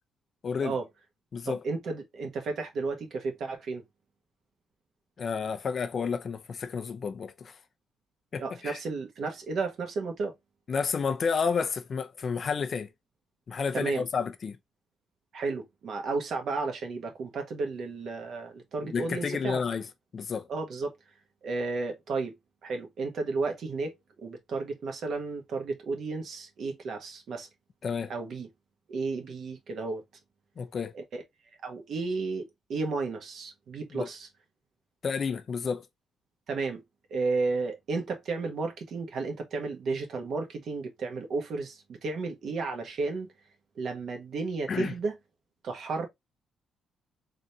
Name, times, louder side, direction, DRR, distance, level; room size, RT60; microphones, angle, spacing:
voice 1, 0.4-0.8 1.3-1.6 5.2-7.6 8.3-8.8 10.7-12.9 13.5-14.6 18.8-19.9 20.1-20.5 27.8-28.1 30.6-30.9 33.9-34.1 35.0-35.9 44.7-44.9, left 6 dB, 45° left, 0.6 m, -31 dB
voice 2, 1.4-3.8 8.4-10.3 13.7-14.1 15.3-19.6 20.5-20.9 21.4-22.4 22.6-27.5 28.1-28.5 28.9-30.0 30.9-31.0 31.6-34.3 36.5-36.8 37.1-43.3 43.7-45.1 45.6-46.1, right 3 dB, 65° right, 1.4 m, -33 dB
3.9 x 3.3 x 2.6 m
cardioid pair, 90°, 0 cm